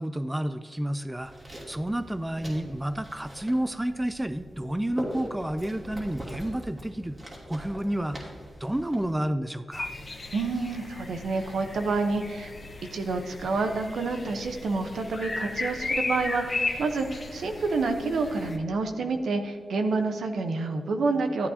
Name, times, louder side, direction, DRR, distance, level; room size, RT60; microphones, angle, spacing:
voice 1, 0.0-1.3 1.7-7.2 7.5-8.3 8.6-9.9, right 1 dB, 10° right, 11 dB, 0.4 m, -30 dB
sound 1, 1.1-9.2, right 1 dB, 35° right, 2.6 m, -42 dB
sound 2, 9.7-18.6, left 3 dB, 40° left, 1.1 m, -35 dB
voice 2, 10.3-12.5 12.9-21.5, right 3 dB, 90° right, 6 dB, 0.9 m, -28 dB
13.5 x 8.9 x 2.8 m, 2.1 s
wide cardioid pair, 90°, 0 cm